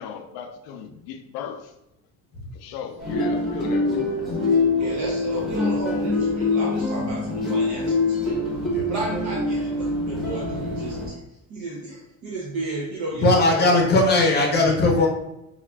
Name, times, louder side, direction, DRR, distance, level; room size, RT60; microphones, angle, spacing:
voice 1, 0.0-1.8 2.5-4.1, left 8 dB, 90° left, 7 dB, 0.6 m, -36 dB
sound 1, 3.0-11.1, left 2 dB, ahead, 0.9 m, -24 dB
voice 2, 4.8-8.4 8.9-13.7, right 2 dB, 50° right, -3 dB, 0.7 m, -33 dB
voice 3, 13.2-15.1, left 2 dB, 25° left, 0 dB, 0.7 m, -18 dB
4.9 x 2.4 x 2.2 m, 0.86 s
cardioid pair, 155°, 37 cm